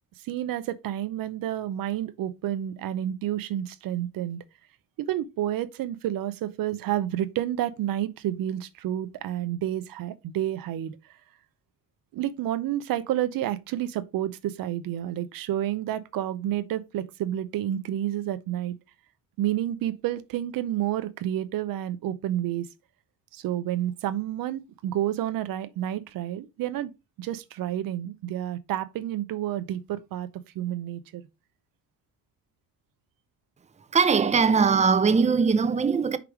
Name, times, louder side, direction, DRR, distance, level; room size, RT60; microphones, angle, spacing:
voice 1, 0.2-4.4 5.0-11.1 12.1-18.8 19.4-22.7 23.3-26.9 27.2-30.3 30.5-31.2, right 12 dB, 75° right, 0.6 m, -30 dB
voice 2, 33.9-36.2, right 5 dB, 20° right, 0.6 m, -21 dB
4.9 x 4.7 x 4.7 m
cardioid pair, 105°, 34 cm